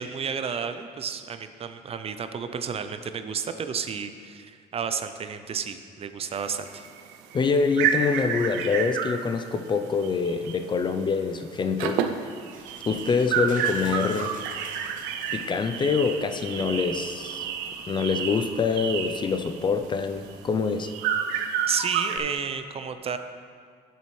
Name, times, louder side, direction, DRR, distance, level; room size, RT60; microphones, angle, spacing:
voice 1, 0.0-6.9 21.7-23.2, right 6 dB, 35° right, 9 dB, 0.4 m, -31 dB
sound 1, 6.4-10.7 11.0-11.2 11.5-22.2, right 8 dB, 90° right, 0.5 m, -30 dB
voice 2, 7.3-12.0 12.9-14.4 15.3-17.4 17.9-20.9, left 5 dB, 30° left, 8 dB, 0.4 m, -25 dB
sound 2, 12.5-20.3, right 4 dB, 50° right, 1.0 m, -49 dB
9.9 x 6.8 x 3.1 m, 2.1 s
cardioid pair, 110°, 17 cm